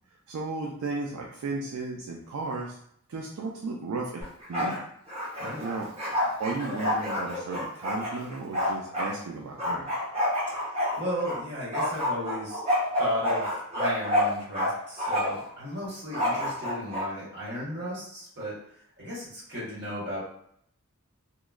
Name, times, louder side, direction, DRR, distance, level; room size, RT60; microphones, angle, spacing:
voice 1, 0.3-2.8 3.1-4.2 4.5-4.8 5.6-9.9, right 3 dB, 85° right, 0 dB, 0.4 m, -34 dB
Bark, 4.2-4.8 5.1-9.1 9.6-11.4 11.7-14.7 15.0-15.5 16.1-17.0, left 1 dB, 25° right, 0.8 m, -28 dB
voice 2, 10.6-12.6 13.0-18.6 19.0-20.2, equal, 55° right, -8 dB, 1.4 m, -35 dB
2.9 x 2.1 x 2.3 m, 0.68 s
head